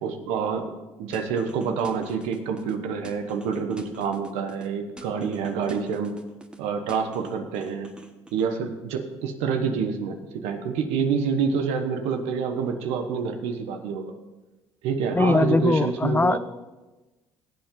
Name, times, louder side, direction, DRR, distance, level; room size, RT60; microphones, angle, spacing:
voice 1, 0.0-6.1 6.6-7.9 8.3-14.1 14.8-16.4, right 6 dB, 85° right, 6 dB, 1.2 m, -27 dB
sound 1, 1.1-2.7 3.0-4.7 5.0-6.6 6.9-8.5, right 1 dB, 10° right, 1.2 m, -45 dB
voice 2, 15.1-16.4, left 3 dB, 20° left, 15 dB, 0.4 m, -21 dB
17.5 x 7.6 x 3.9 m, 1.1 s
supercardioid pair, 75°, 11 cm